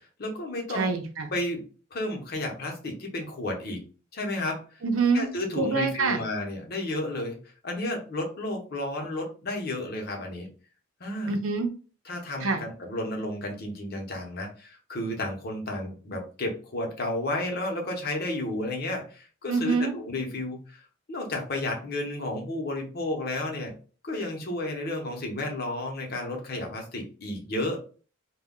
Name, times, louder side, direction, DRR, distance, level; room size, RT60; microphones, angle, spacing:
voice 1, 0.2-0.9 1.3-1.6 1.9-3.8 4.1-4.6 5.1-7.4 7.6-10.5 11.0-11.3 12.1-20.8 21.1-23.7 24.0-27.8, left 1 dB, 50° left, 2 dB, 0.8 m, -32 dB
voice 2, 0.7-1.3 4.8-5.3 5.6-6.2 11.3-11.7 12.4-12.6 19.5-19.9, right 4 dB, 85° right, 6 dB, 0.6 m, -25 dB
2.2 x 2.2 x 3.6 m, 0.37 s
head